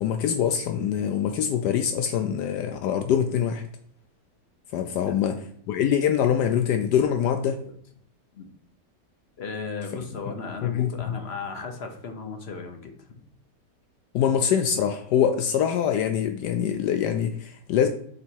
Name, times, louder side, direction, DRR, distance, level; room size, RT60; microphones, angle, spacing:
voice 1, 0.0-3.6 4.7-5.4 5.7-7.6 10.6-11.2 14.1-17.9, left 8 dB, 75° left, 7 dB, 1.1 m, -24 dB
voice 2, 9.4-13.2, left 4 dB, 50° left, 5 dB, 0.8 m, -36 dB
5.7 x 4.1 x 4.5 m, 0.62 s
omnidirectional pair, 1.9 m